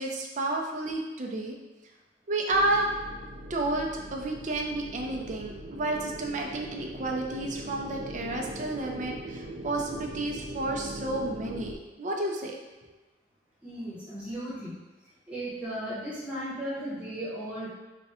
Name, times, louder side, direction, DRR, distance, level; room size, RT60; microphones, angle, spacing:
voice 1, 0.0-1.5 2.3-2.9 3.5-12.5, right 2 dB, 40° right, 1 dB, 0.5 m, -31 dB
sound 1, 2.5-11.8, right 1 dB, 85° right, 0.6 m, -41 dB
voice 2, 13.6-14.7 15.3-17.7, right 1 dB, 5° right, -10 dB, 0.9 m, -36 dB
3.4 x 2.3 x 4.2 m, 1.2 s
head